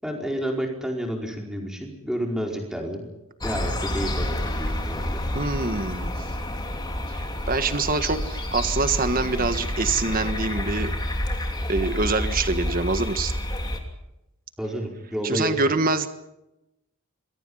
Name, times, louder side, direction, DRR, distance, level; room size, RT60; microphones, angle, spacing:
voice 1, 0.0-3.1 3.4-5.2 14.6-15.7, equal, 5° right, 1 dB, 4.8 m, -30 dB
sound 1, 3.4-13.8, left 1 dB, 20° left, 3.0 m, -29 dB
voice 2, 5.3-6.1 7.1-10.9 11.7-13.3 15.2-16.1, right 3 dB, 40° right, 9 dB, 1.5 m, -25 dB
27.0 x 22.5 x 5.7 m, 0.92 s
head